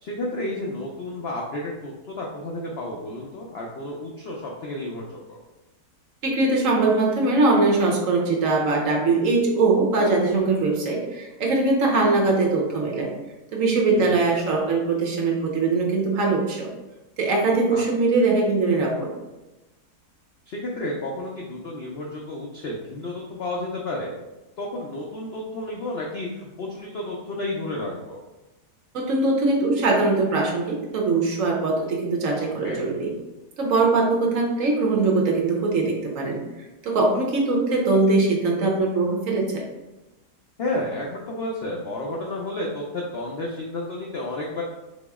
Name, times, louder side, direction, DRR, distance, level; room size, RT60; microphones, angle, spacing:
voice 1, 0.0-5.4 14.0-14.2 17.7-17.8 20.5-24.1 24.6-28.2 32.6-32.9 40.6-44.6, left 1 dB, 80° left, -2 dB, 0.5 m, -31 dB
voice 2, 6.2-13.1 13.5-16.7 17.2-19.1 28.9-33.1 33.6-36.4 36.8-39.6, right 3 dB, 60° right, -1 dB, 1.0 m, -21 dB
4.0 x 3.0 x 3.5 m, 1.0 s
omnidirectional pair, 1.7 m